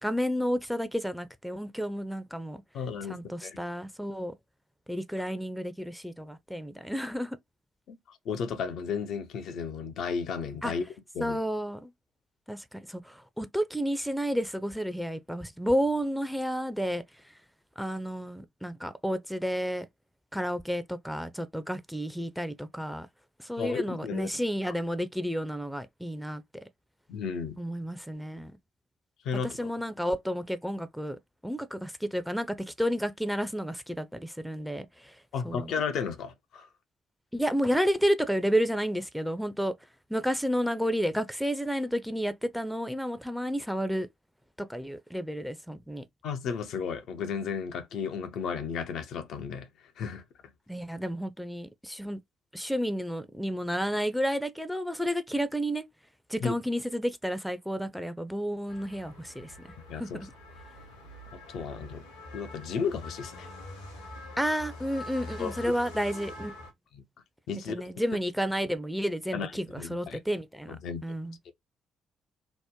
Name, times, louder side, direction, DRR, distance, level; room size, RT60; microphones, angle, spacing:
voice 1, 0.0-2.6 3.1-4.3 4.9-7.4 10.6-10.7 11.2-11.9 12.5-17.0 17.8-19.9 20.3-23.1 23.4-26.4 27.6-28.5 29.6-31.2 31.4-34.9 35.4-35.7 37.3-39.7 40.1-44.1 44.6-46.0 50.7-52.2 52.5-55.8 56.3-59.5 60.0-60.3 64.4-66.5 67.7-70.8 71.0-71.4, equal, ahead, 0.5 m, -31 dB
voice 2, 2.7-3.6 7.9-10.8 11.1-11.4 23.6-24.3 27.1-27.6 29.2-29.7 35.3-36.7 46.2-49.7 50.0-50.2 56.4-56.6 59.9-60.3 61.3-62.0 62.3-63.5 65.4-65.7 66.9-67.0 67.5-67.8 69.3-70.2 70.7-71.0 71.5-71.6, left 6 dB, 65° left, 0.5 m, -34 dB
sound 1, 58.7-66.7, left 2 dB, 85° left, 1.1 m, -44 dB
3.0 x 2.1 x 3.5 m
figure-of-eight pair, 45°, 0 cm